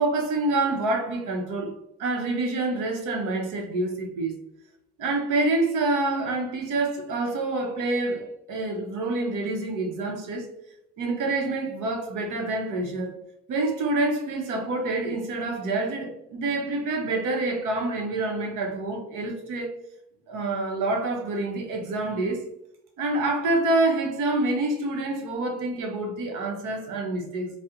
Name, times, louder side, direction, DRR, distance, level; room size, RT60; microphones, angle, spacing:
voice 1, 0.0-1.7 2.0-4.4 5.0-10.5 11.0-13.2 13.5-19.8 20.3-22.4 23.0-27.5, right 2 dB, 90° right, 0.8 m, -27 dB
4.1 x 2.1 x 2.4 m
cardioid pair, 90°, 30 cm